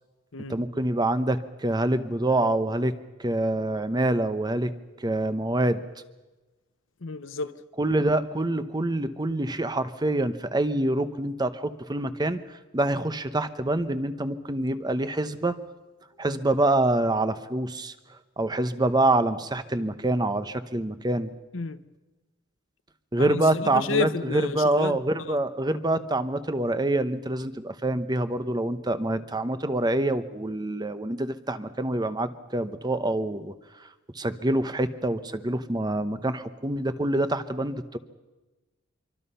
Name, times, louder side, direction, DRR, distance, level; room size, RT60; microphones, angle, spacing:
voice 1, 0.5-4.7 5.0-5.8 7.8-15.6 16.2-17.9 18.4-21.3 23.1-33.5 34.1-38.0, right 1 dB, 20° right, 0.9 m, -26 dB
voice 2, 7.0-7.6 21.5-21.8 23.2-25.0 25.3-25.4, left 3 dB, 75° left, 0.9 m, -30 dB
25.5 x 24.0 x 5.6 m
head